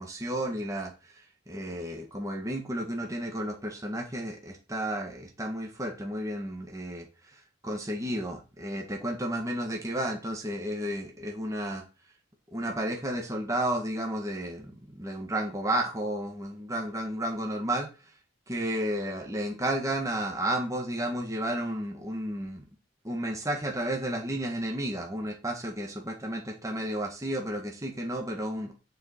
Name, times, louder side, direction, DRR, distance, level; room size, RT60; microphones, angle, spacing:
voice 1, 0.0-11.8 12.5-18.1 18.5-22.7 23.0-28.7, right 1 dB, 15° right, 1 dB, 1.7 m, -32 dB
7.1 x 6.4 x 7.8 m, 0.31 s
head